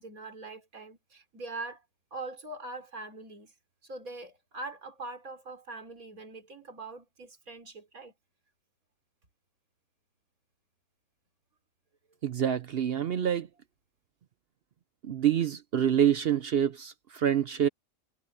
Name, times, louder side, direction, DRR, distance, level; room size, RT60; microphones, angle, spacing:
voice 1, 0.0-1.8 2.1-3.5 3.8-8.1, right 2 dB, 85° right, 4.1 m, -42 dB
voice 2, 12.2-13.5 15.0-17.7, right 9 dB, 55° right, 0.7 m, -26 dB
omnidirectional pair, 1.5 m